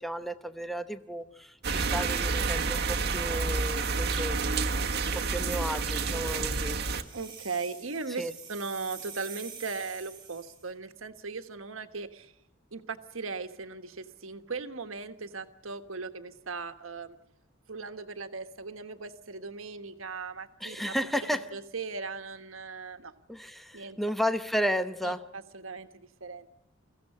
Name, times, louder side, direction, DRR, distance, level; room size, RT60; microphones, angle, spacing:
voice 1, 0.0-4.4 5.1-6.8 8.2-8.3 20.6-21.5 23.3-25.2, equal, ahead, 10 dB, 0.9 m, -33 dB
sound 1, 1.6-7.0, right 4 dB, 55° right, 1.4 m, -29 dB
sound 2, 7.0-10.7, right 6 dB, 25° right, 7.3 m, -46 dB
voice 2, 7.1-12.3 12.7-17.2 17.7-20.8 21.3-23.1 23.7-24.0 25.0-26.5, right 4 dB, 80° right, 9 dB, 1.4 m, -38 dB
22.5 x 15.5 x 9.7 m, 0.80 s
head